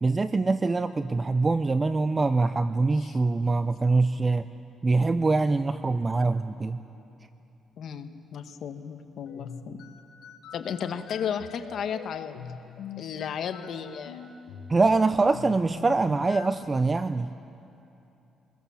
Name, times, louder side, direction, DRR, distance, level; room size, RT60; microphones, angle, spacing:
voice 1, 0.0-4.5 4.8-6.8 14.7-17.3, right 3 dB, 25° right, 11 dB, 0.6 m, -24 dB
voice 2, 7.8-9.8 10.5-12.3 13.0-14.3, left 7 dB, 65° left, 7 dB, 1.4 m, -34 dB
sound 1, 9.2-16.7, left 7 dB, 90° left, 1.4 m, -44 dB
26.0 x 21.0 x 7.2 m, 2.8 s
cardioid pair, 90°, 0 cm